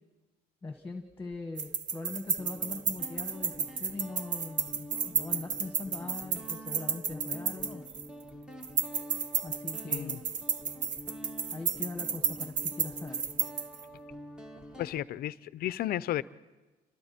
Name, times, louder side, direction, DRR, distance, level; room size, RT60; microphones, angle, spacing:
voice 1, 0.6-7.8 9.4-10.2 11.5-13.2, left 3 dB, 15° left, 5 dB, 1.6 m, -41 dB
Guitar, 1.1-1.4 2.4-15.0, equal, 5° right, 1.3 m, -47 dB
sound 1, 1.6-8.2 8.6-13.8, right 6 dB, 50° right, 1.1 m, -32 dB
voice 2, 9.9-10.2 14.8-16.2, left 13 dB, 65° left, 17 dB, 0.6 m, -33 dB
29.5 x 25.5 x 4.4 m, 1.2 s
cardioid pair, 110°, 17 cm